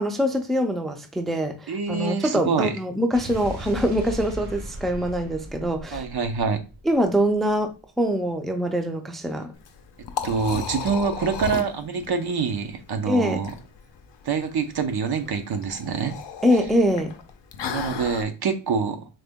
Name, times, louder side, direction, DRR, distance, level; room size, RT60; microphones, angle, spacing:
voice 1, 0.0-6.0 6.9-9.5 13.1-13.4 16.4-17.1, equal, ahead, 0.4 m, -24 dB
voice 2, 1.7-2.7 5.9-6.6 10.2-13.6 14.2-16.2 17.7-19.1, right 5 dB, 55° right, 0.6 m, -26 dB
Explosion, 3.1-7.5, equal, 75° right, 1.5 m, -37 dB
Liquid, 9.5-18.2, left 7 dB, 65° left, 0.6 m, -35 dB
3.9 x 2.1 x 3.5 m
wide cardioid pair, 75°, 47 cm